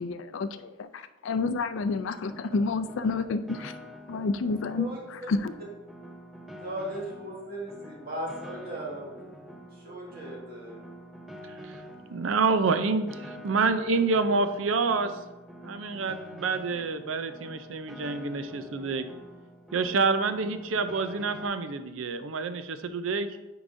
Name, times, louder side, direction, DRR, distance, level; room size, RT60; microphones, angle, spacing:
voice 1, 0.0-3.7 4.1-5.5, left 3 dB, 65° left, 12 dB, 0.4 m, -30 dB
Piano, 2.3-21.5, equal, ahead, 0.5 m, -46 dB
voice 2, 6.6-9.3 9.8-10.9, right 1 dB, 50° right, -4 dB, 1.8 m, -37 dB
voice 3, 12.1-15.1 15.6-19.1 19.7-23.3, right 4 dB, 80° right, 10 dB, 0.5 m, -27 dB
8.9 x 4.7 x 2.6 m, 1.1 s
head